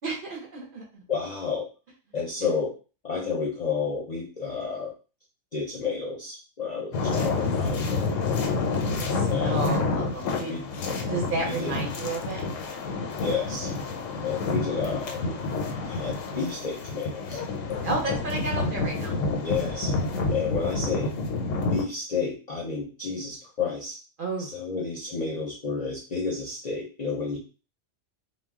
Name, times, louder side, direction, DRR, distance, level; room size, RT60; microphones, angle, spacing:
voice 1, 0.0-1.0 8.8-10.5 11.1-12.4 17.8-19.2 24.2-24.5, right 3 dB, 55° right, 0 dB, 0.7 m, -32 dB
voice 2, 1.1-1.7 2.1-2.7 3.0-4.9 5.5-8.4 9.3-9.6 10.5-10.7 11.4-11.7 13.2-13.7 14.2-15.3 15.9-17.4 19.4-19.9 20.3-21.1 21.7-24.0 24.4-27.4, left 5 dB, 50° left, -2 dB, 0.5 m, -31 dB
sound 1, 6.9-21.8, left 3 dB, 90° left, 0.9 m, -28 dB
2.3 x 2.1 x 3.4 m, 0.34 s
omnidirectional pair, 1.3 m